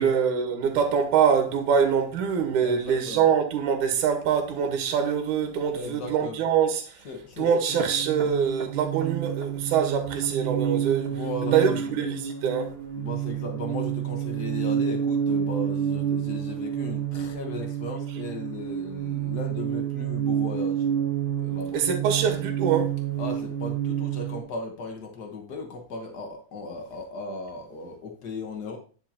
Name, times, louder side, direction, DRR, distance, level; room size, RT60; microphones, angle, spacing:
voice 1, 0.0-7.1 7.4-11.2 11.5-12.7 21.7-22.9, right 7 dB, 80° right, 2.6 m, -24 dB
voice 2, 2.6-3.3 5.7-6.4 7.0-7.6 11.1-12.0 13.0-20.9 21.4-21.8 22.1-22.2 23.2-28.8, left 3 dB, 70° left, 0.9 m, -37 dB
sound 1, 7.7-24.4, right 9 dB, 45° right, 2.4 m, -29 dB
10.0 x 5.6 x 2.8 m
omnidirectional pair, 3.6 m